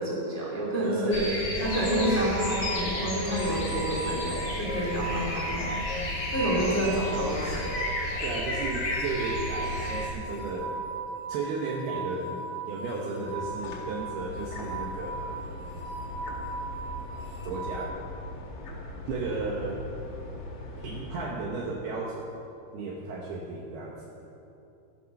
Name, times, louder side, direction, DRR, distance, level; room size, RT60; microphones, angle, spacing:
voice 1, 0.0-1.3 1.6-7.7, equal, 5° left, -5 dB, 2.1 m, -29 dB
voice 2, 0.8-1.6 8.2-10.8 11.3-12.4 12.7-15.4 17.4-18.0 19.1-19.8 20.8-22.3 22.7-24.2, right 3 dB, 70° right, -2 dB, 2.7 m, -34 dB
sound 1, 1.1-10.1, left 1 dB, 75° left, 0.9 m, -32 dB
sound 2, 1.6-17.9, right 4 dB, 40° right, 1.7 m, -38 dB
sound 3, 13.2-21.2, left 1 dB, 45° left, 2.9 m, -40 dB
13.5 x 11.0 x 6.5 m, 2.7 s
omnidirectional pair, 5.5 m